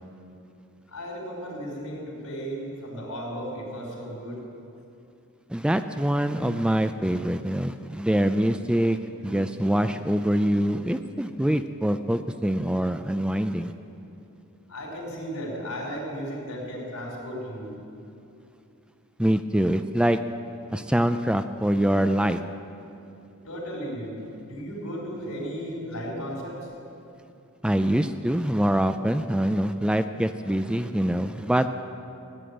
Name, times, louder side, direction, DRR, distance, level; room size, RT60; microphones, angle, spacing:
voice 1, 0.9-4.4 14.7-17.7 23.4-26.6, equal, 85° left, -2 dB, 4.8 m, -35 dB
voice 2, 5.5-9.0 9.2-13.7 19.2-20.2 20.7-22.4 27.6-31.8, right 1 dB, 5° right, 9 dB, 0.4 m, -24 dB
15.0 x 9.6 x 8.8 m, 2.7 s
head